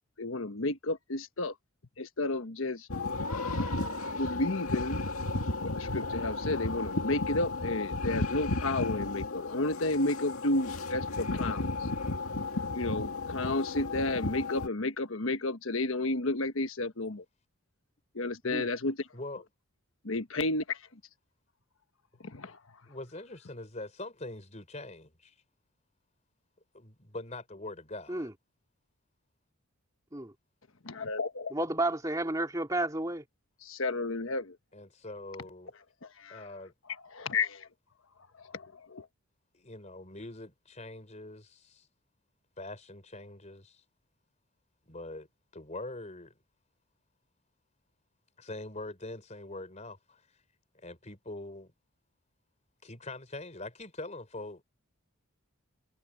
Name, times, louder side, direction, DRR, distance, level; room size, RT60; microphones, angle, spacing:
voice 1, 0.2-1.5 2.0-2.9 4.1-5.0 5.6-11.7 12.7-17.2 18.1-19.1 20.0-20.8 22.2-22.6 30.8-31.5 33.6-34.6 36.2-36.4 37.1-37.7 38.5-39.0, left 2 dB, 65° left, 1.3 m, -32 dB
sound 1, 2.9-14.7, left 3 dB, 85° left, 2.2 m, -34 dB
voice 2, 19.1-19.4 22.9-25.4 26.7-28.3 34.7-35.7 36.3-36.7 39.5-41.9 42.6-43.8 44.9-45.3 45.5-46.3 48.4-50.2 50.7-51.7 52.8-54.6, left 2 dB, 30° left, 4.2 m, -43 dB
voice 3, 31.5-33.2, right 2 dB, 15° right, 2.5 m, -31 dB
head